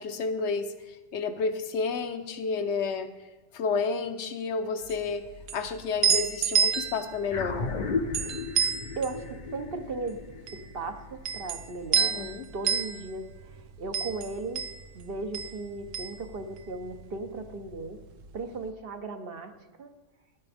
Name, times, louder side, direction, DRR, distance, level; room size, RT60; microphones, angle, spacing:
voice 1, 0.0-3.1 3.5-5.2 5.5-7.7 11.9-12.5, left 4 dB, 60° left, 8 dB, 1.1 m, -31 dB
sound 1, 4.8-17.1 17.3-18.4, right 7 dB, 80° right, 1.1 m, -30 dB
sound 2, 7.3-11.9, left 4 dB, 45° left, 0.8 m, -35 dB
voice 2, 9.0-10.2 10.5-14.6 14.9-18.0 18.3-19.5 19.8-19.9, right 3 dB, 50° right, 6 dB, 1.0 m, -37 dB
14.0 x 11.0 x 3.5 m, 1.2 s
omnidirectional pair, 1.3 m